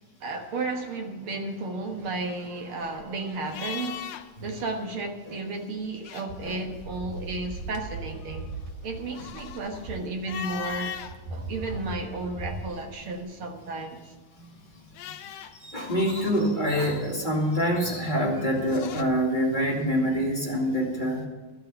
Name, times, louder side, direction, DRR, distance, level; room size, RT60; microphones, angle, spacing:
voice 1, 0.2-4.0 4.4-8.4 8.8-11.0 11.3-14.1, right 3 dB, 55° right, 1.7 m, -33 dB
sound 1, 2.0-4.5 4.8-5.0 5.8-6.7 7.2-11.2 11.7-12.7 14.2-19.0, left 8 dB, 70° left, 1.8 m, -41 dB
sound 2, 6.3-13.2, right 2 dB, 90° right, 3.1 m, -39 dB
voice 2, 15.5-21.2, equal, 15° left, 2.0 m, -26 dB
13.0 x 8.5 x 7.0 m
omnidirectional pair, 3.8 m